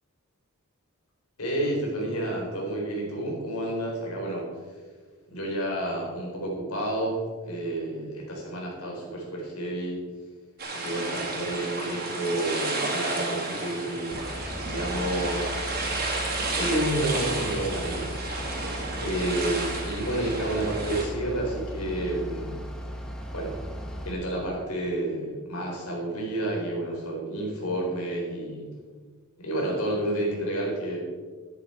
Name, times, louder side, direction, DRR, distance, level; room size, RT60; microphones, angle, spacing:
voice 1, 1.4-4.5 5.3-10.0 10.7-14.2 14.7-15.6 16.5-18.1 19.0-22.6 23.3-23.6 24.0-28.7 29.4-31.0, right 1 dB, 80° left, -1 dB, 4.1 m, -30 dB
sound 1, 10.6-21.0, right 2 dB, 45° right, 2.9 m, -32 dB
Bus / Idling, 14.1-24.1, equal, 5° left, 1.3 m, -37 dB
12.5 x 10.5 x 4.5 m, 1.5 s
head